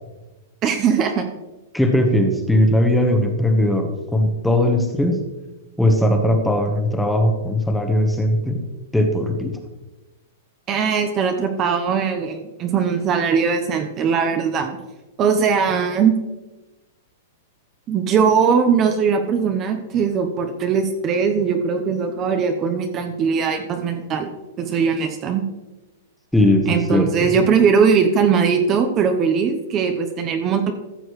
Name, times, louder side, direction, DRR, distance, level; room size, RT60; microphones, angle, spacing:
voice 1, 0.6-1.2 10.7-14.7 15.2-16.1 17.9-24.3 24.6-25.4 26.7-30.7, right 6 dB, 30° right, 5 dB, 0.7 m, -20 dB
voice 2, 1.7-5.2 5.8-8.6 8.9-9.6 26.3-27.3, left 1 dB, 5° left, 4 dB, 1.1 m, -19 dB
14.0 x 6.3 x 3.1 m, 1.1 s
hypercardioid pair, 135°, 0 cm